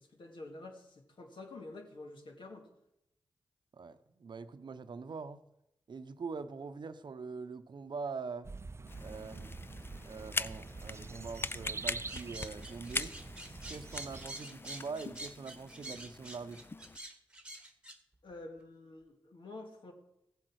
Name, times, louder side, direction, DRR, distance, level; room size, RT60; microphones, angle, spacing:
voice 1, 0.0-2.7 18.2-19.9, left 2 dB, 70° left, 2.1 m, -48 dB
voice 2, 3.7-5.4 5.9-8.5 9.0-9.5 10.0-13.2 13.7-16.7, right 4 dB, 60° right, 0.7 m, -43 dB
sound 1, 8.4-14.3, right 4 dB, 30° right, 0.4 m, -46 dB
sound 2, 8.9-17.0, left 3 dB, 25° left, 0.4 m, -42 dB
sound 3, 12.1-18.0, right 1 dB, 10° right, 1.4 m, -47 dB
15.0 x 7.7 x 4.7 m
cardioid pair, 50°, 9 cm